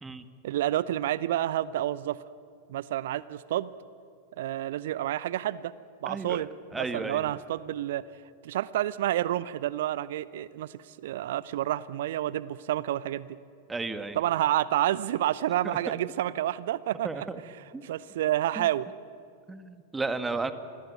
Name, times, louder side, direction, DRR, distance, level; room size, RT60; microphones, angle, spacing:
voice 1, 0.4-2.2 2.7-3.7 4.4-5.7 6.0-6.5 6.8-8.0 8.4-13.3 14.1-18.9, right 13 dB, 55° right, 19 dB, 0.6 m, -29 dB
voice 2, 6.0-6.4 6.7-7.3 13.7-14.2 15.6-15.8 17.0-17.4 17.7-17.8 18.6-18.7 19.5-20.5, right 3 dB, 10° right, 10 dB, 1.8 m, -33 dB
27.5 x 22.0 x 9.1 m, 2.4 s
figure-of-eight pair, 90°, 0 cm